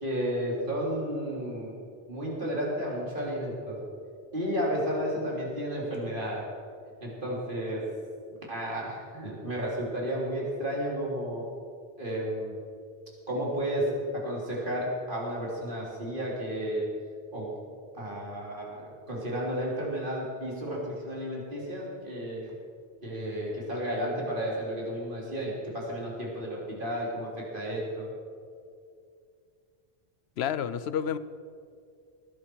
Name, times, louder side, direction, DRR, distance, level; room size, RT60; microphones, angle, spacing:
voice 1, 0.0-1.8 2.1-3.8 4.3-6.4 7.0-7.8 8.3-11.4 12.0-12.6 13.3-13.8 14.1-16.9 17.3-17.5 17.9-22.5 23.0-28.1, equal, 55° right, -4 dB, 3.6 m, -32 dB
voice 2, 30.4-31.2, left 8 dB, 80° left, 14 dB, 0.9 m, -29 dB
20.0 x 11.0 x 4.6 m, 2.3 s
omnidirectional pair, 1.1 m